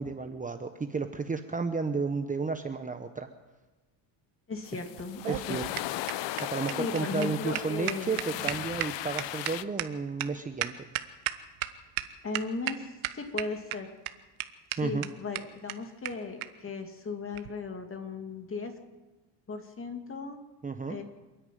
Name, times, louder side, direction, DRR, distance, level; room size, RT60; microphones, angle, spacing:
voice 1, 0.0-3.3 4.7-4.8 5.3-5.6 6.4-10.8 14.8-15.0 20.6-21.0, right 4 dB, 15° right, 7 dB, 1.0 m, -32 dB
voice 2, 4.5-5.6 6.8-8.6 12.2-13.9 14.8-18.7 19.5-20.4 20.9-21.0, left 4 dB, 25° left, 6 dB, 2.5 m, -37 dB
sound 1, 4.6-9.6, left 15 dB, 65° left, 0.8 m, -37 dB
sound 2, 5.0-11.7 12.0-12.1 12.3-12.7 13.0-13.7 14.1-14.2 14.4-14.5 14.7-14.8 15.0-15.1 15.3-15.4 15.7-15.8 16.0-16.1 16.4-16.5 17.3-17.5, right 16 dB, 80° right, 1.3 m, -33 dB
27.5 x 10.0 x 9.3 m, 1.2 s
cardioid pair, 125°, 47 cm